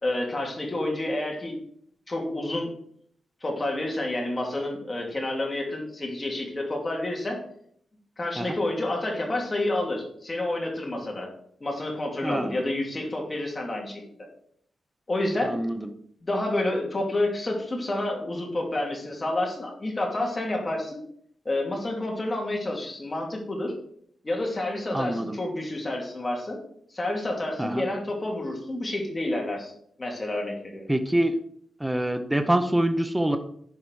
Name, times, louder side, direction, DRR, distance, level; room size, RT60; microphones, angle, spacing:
voice 1, 0.0-1.6 2.1-2.7 3.4-7.4 8.2-11.3 11.6-14.0 15.1-15.5 16.2-21.0 21.4-23.7 24.2-26.6 26.9-29.7 30.0-30.9, left 1 dB, 25° left, 0 dB, 2.5 m, -29 dB
voice 2, 12.2-12.6 15.4-15.9 24.9-25.4 27.6-27.9 30.9-31.3 31.8-33.4, right 1 dB, 10° right, 7 dB, 0.7 m, -25 dB
11.0 x 4.8 x 4.7 m, 0.65 s
wide cardioid pair, 120°, 0 cm